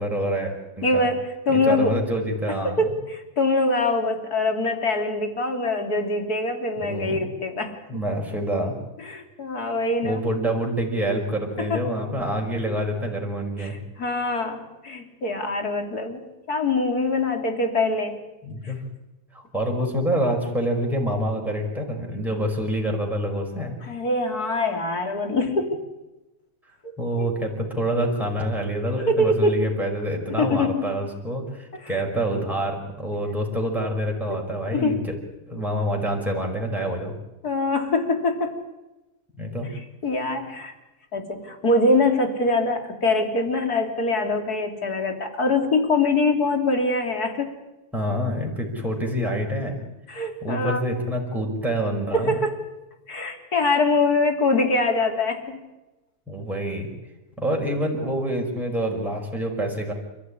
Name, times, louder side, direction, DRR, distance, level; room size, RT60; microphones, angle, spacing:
voice 1, 0.0-1.1 1.5-2.8 6.8-7.2 7.9-8.8 10.0-13.8 18.4-18.8 19.3-23.8 27.0-35.1 35.5-37.1 39.4-39.7 47.9-49.8 50.4-52.3 56.3-56.9 57.4-59.9, equal, ahead, 0 dB, 5.3 m, -26 dB
voice 2, 0.8-2.0 2.8-7.8 9.0-10.2 11.6-11.9 13.6-18.2 18.6-18.7 23.8-25.8 26.8-26.9 27.2-27.3 29.0-29.6 30.3-30.9 31.7-31.9 34.3-34.4 34.7-35.0 37.4-38.6 40.0-40.7 41.1-47.5 50.1-50.8 52.1-52.5 53.1-55.7, left 2 dB, 70° left, 5 dB, 3.7 m, -24 dB
29.0 x 14.5 x 10.0 m, 1.0 s
omnidirectional pair, 1.7 m